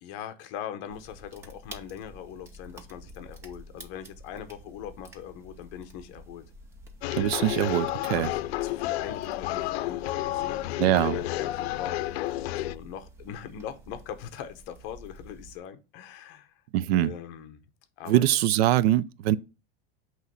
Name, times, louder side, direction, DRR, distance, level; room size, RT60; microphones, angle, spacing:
voice 1, 0.0-6.4 7.3-7.5 8.0-12.0 12.5-16.6 16.9-17.6 18.0-18.4, left 9 dB, 40° left, 0.8 m, -41 dB
sound 1, 0.9-15.6, equal, 10° right, 0.3 m, -49 dB
sound 2, 7.0-12.8, left 16 dB, 85° left, 0.5 m, -31 dB
voice 2, 7.1-8.3 10.8-11.2 16.7-17.1 18.1-19.4, right 13 dB, 80° right, 0.5 m, -23 dB
8.1 x 3.1 x 5.5 m
supercardioid pair, 175°, 30 cm